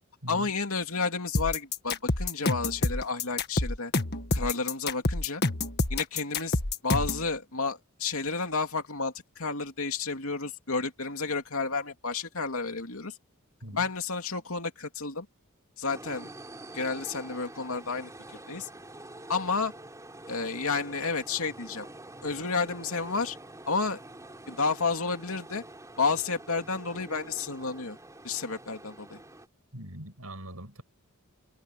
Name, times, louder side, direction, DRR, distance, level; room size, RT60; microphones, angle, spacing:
voice 1, 0.3-3.9 4.3-5.4 5.9-13.1 13.7-15.3 15.8-16.3 16.7-18.1 18.5-18.7 19.3-19.7 20.3-21.9 22.2-23.4 23.7-24.0 24.5-25.6 26.0-28.0 28.2-29.2, left 4 dB, 70° left, 2.9 m, -31 dB
sound 1, 1.3-7.3, left 2 dB, 50° left, 1.7 m, -27 dB
sound 2, 15.9-29.5, right 1 dB, 15° right, 3.5 m, -47 dB
voice 2, 29.7-30.8, right 1 dB, 80° right, 6.4 m, -42 dB
head